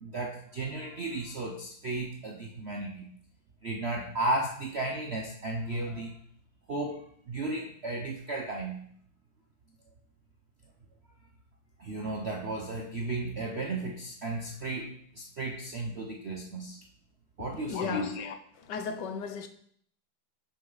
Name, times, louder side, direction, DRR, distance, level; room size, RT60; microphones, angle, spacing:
voice 1, 0.0-3.1 3.6-6.1 6.7-8.8 11.8-16.8 17.4-18.1, right 2 dB, 60° right, 0.7 m, -34 dB
voice 2, 17.7-19.5, left 5 dB, 65° left, 1.3 m, -34 dB
10.0 x 6.3 x 4.0 m
omnidirectional pair, 2.1 m